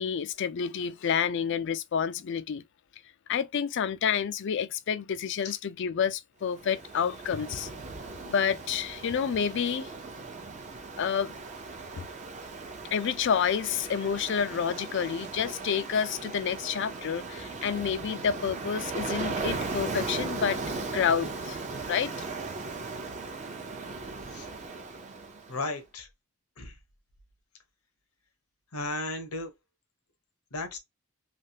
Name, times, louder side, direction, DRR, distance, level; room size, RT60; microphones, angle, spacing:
voice 1, 0.0-2.6 3.3-7.7 8.3-9.9 11.0-11.3 12.0-12.1 12.9-20.6 20.9-21.6 21.9-22.1, left 7 dB, 55° left, 0.4 m, -29 dB
Ocean, 6.5-25.6, right 3 dB, 35° right, 0.5 m, -38 dB
voice 2, 25.5-26.1 26.6-26.8 28.7-29.5 30.5-30.8, left 2 dB, 80° left, 1.0 m, -35 dB
3.3 x 2.3 x 2.8 m
head